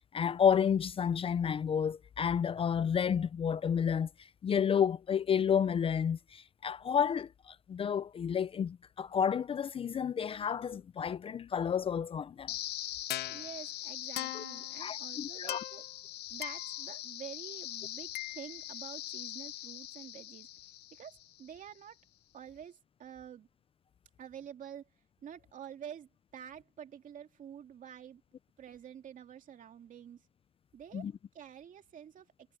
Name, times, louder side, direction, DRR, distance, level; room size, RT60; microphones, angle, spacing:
voice 1, 0.1-12.5 14.3-14.4 14.8-15.6 30.9-31.1, left 7 dB, 35° left, 0.5 m, -31 dB
sound 1, 12.5-21.5, left 15 dB, 75° left, 1.0 m, -40 dB
voice 2, 13.3-15.9 16.3-20.5 20.9-22.0 22.3-23.5 24.2-24.9 25.2-28.2 28.6-30.2 30.7-31.1 31.3-32.3, right 9 dB, 50° right, 2.6 m, -48 dB
cardioid pair, 110°, 17 cm